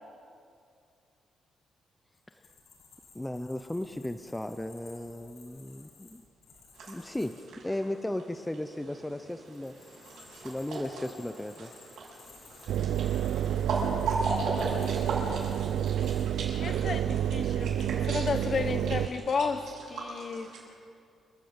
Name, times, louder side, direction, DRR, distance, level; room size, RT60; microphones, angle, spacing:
sound 1, 2.1-7.5 9.3-16.5, left 4 dB, 65° left, 6.7 m, -56 dB
voice 1, 3.1-6.2 6.9-11.7, left 1 dB, 5° left, 8 dB, 0.6 m, -36 dB
sound 2, 6.7-20.6, right 2 dB, 65° right, 7.3 m, -39 dB
Engine, 12.7-19.1, right 10 dB, 90° right, 0.6 m, -29 dB
voice 2, 16.6-20.5, left 5 dB, 35° left, 9 dB, 1.2 m, -32 dB
28.0 x 11.5 x 8.8 m, 2.4 s
cardioid pair, 165°, 0 cm